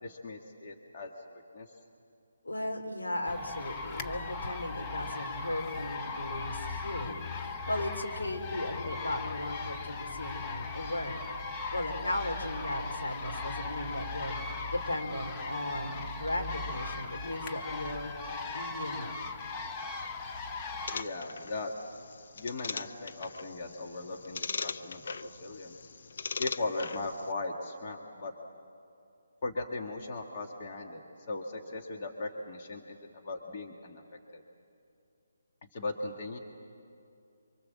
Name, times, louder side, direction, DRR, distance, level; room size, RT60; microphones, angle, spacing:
voice 1, 0.0-1.7 20.9-21.7 22.4-25.8 26.4-28.3 29.4-34.0 34.3-34.4 35.7-36.4, left 2 dB, 40° left, 2 dB, 1.9 m, -38 dB
voice 2, 2.4-11.2 11.7-18.1 18.5-19.2, left 1 dB, 85° left, 3 dB, 3.5 m, -36 dB
sound 1, 3.3-21.0, left 3 dB, 20° left, 0.9 m, -38 dB
sound 2, 20.9-27.3, left 5 dB, 60° left, 0.6 m, -40 dB
27.5 x 24.5 x 7.5 m, 2.5 s
figure-of-eight pair, 150°, 0 cm